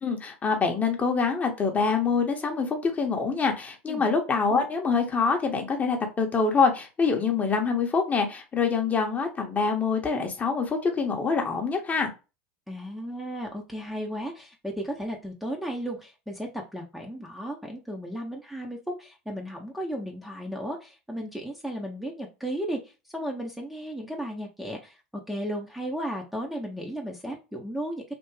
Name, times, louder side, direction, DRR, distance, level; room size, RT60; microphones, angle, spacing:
voice 1, 0.0-12.1, left 5 dB, 25° left, 4 dB, 0.9 m, -25 dB
voice 2, 12.7-25.0 25.3-28.0, equal, 5° right, 0 dB, 0.7 m, -34 dB
3.4 x 2.5 x 3.2 m, 0.30 s
hypercardioid pair, 85°, 6 cm